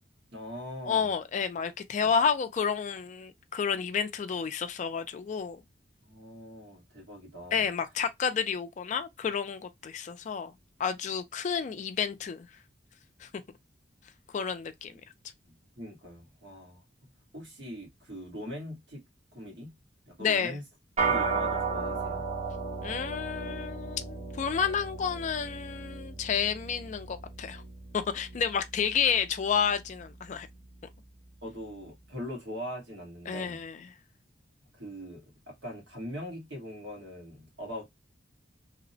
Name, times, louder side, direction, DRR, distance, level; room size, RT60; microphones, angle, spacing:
voice 1, 0.3-1.1 2.0-2.1 6.0-7.7 15.8-16.8 17.3-19.0 19.3-19.7 20.0-20.6 21.0-22.2 31.4-33.6 34.7-37.9, equal, 75° right, 1.3 m, -41 dB
voice 2, 0.9-5.6 7.5-10.5 10.8-12.5 13.2-13.3 14.3-15.0 20.2-20.6 22.8-27.6 27.9-30.5 33.3-33.9, left 6 dB, 40° left, 0.3 m, -30 dB
sound 1, 21.0-30.5, right 4 dB, 35° right, 0.6 m, -35 dB
2.8 x 2.0 x 2.5 m
head